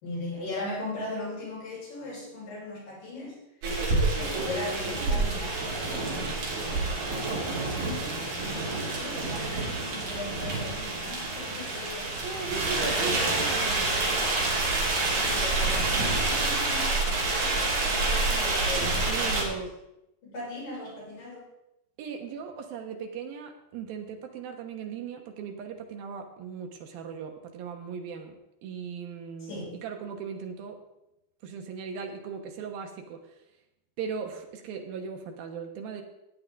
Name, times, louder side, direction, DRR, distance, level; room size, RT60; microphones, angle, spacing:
voice 1, 0.0-3.4 4.1-14.4 15.1-19.5 20.2-21.5 29.5-29.7, left 2 dB, 60° left, -6 dB, 6.8 m, -39 dB
sound 1, 3.6-19.4, right 2 dB, 60° right, 4.4 m, -28 dB
voice 2, 3.8-5.5 12.1-14.0 18.7-19.7 22.0-28.4 28.6-29.5 29.8-30.8 31.4-33.2 34.0-36.0, right 6 dB, 80° right, 4 dB, 3.0 m, -38 dB
16.5 x 9.5 x 3.8 m, 0.87 s
omnidirectional pair, 4.3 m